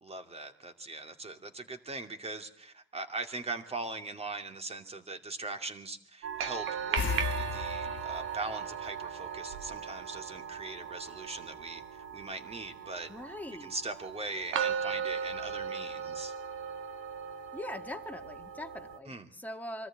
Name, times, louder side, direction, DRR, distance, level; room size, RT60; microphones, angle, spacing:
voice 1, 0.0-16.3 19.1-19.3, right 3 dB, 30° right, 7 dB, 2.5 m, -41 dB
sound 1, 6.2-19.0, right 7 dB, 85° right, 1.6 m, -37 dB
sound 2, 7.0-9.8 10.1-10.2 13.1-13.2 13.6-13.7, left 7 dB, 70° left, 1.3 m, -37 dB
voice 2, 13.1-13.7 17.5-19.9, left 1 dB, 10° left, 5 dB, 1.8 m, -42 dB
24.0 x 14.0 x 8.6 m, 0.69 s
cardioid pair, 90°, 20 cm